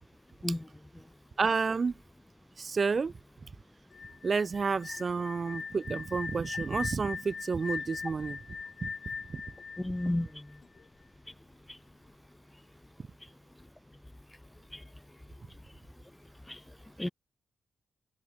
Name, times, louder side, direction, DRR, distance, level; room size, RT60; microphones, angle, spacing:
voice 1, 1.4-1.9 2.6-3.1 4.2-8.4 8.8-8.9 9.3-9.4, right 5 dB, 50° right, 2.0 m, -30 dB
sound 1, 3.9-10.8, left 5 dB, 55° left, 3.2 m, -41 dB
voice 2, 9.8-10.6 11.7-11.8 13.2-13.3 14.7-14.8 16.5-17.1, left 1 dB, 15° left, 0.5 m, -34 dB
cardioid pair, 55°, 0 cm